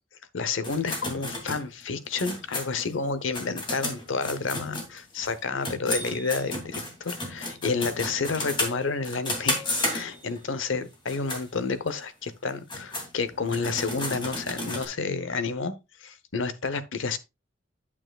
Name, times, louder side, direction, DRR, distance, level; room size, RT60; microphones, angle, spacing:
voice 1, 0.3-9.6 9.9-15.7 16.0-17.2, left 4 dB, 75° left, 0.8 m, -30 dB
sound 1, 0.6-5.3 5.6-10.4 10.9-11.4 11.9-12.0 12.5-14.8, left 1 dB, 25° left, 2.5 m, -33 dB
9.0 x 8.6 x 2.3 m
head